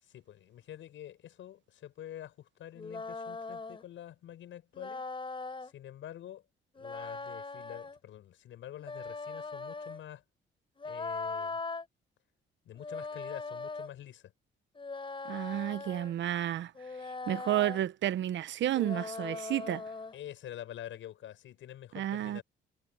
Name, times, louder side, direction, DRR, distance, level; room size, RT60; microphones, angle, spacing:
voice 1, 0.0-5.1 5.6-6.4 6.7-10.2 10.8-11.6 12.6-14.3 20.1-22.4, left 11 dB, 75° left, 7.6 m, -47 dB
sound 1, 2.8-3.8 4.7-5.7 6.8-8.0 8.8-10.0 10.8-11.8 12.8-13.9 14.8-16.1 16.8-17.8 18.7-20.2, left 3 dB, 25° left, 4.4 m, -40 dB
voice 2, 15.3-16.7 17.3-19.8 21.9-22.4, right 12 dB, 70° right, 0.8 m, -31 dB
cardioid pair, 90°, 20 cm